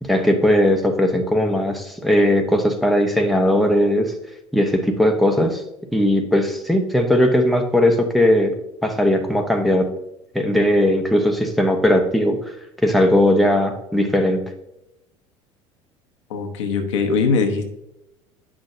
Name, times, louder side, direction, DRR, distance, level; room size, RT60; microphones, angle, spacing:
voice 1, 0.0-4.1 4.5-5.6 5.9-8.5 8.8-9.9 10.3-12.4 12.8-14.4, left 1 dB, ahead, 3 dB, 1.0 m, -18 dB
voice 2, 16.3-17.7, left 4 dB, 80° left, 4 dB, 1.1 m, -21 dB
8.8 x 6.2 x 2.7 m, 0.86 s
hypercardioid pair, 75°, 15 cm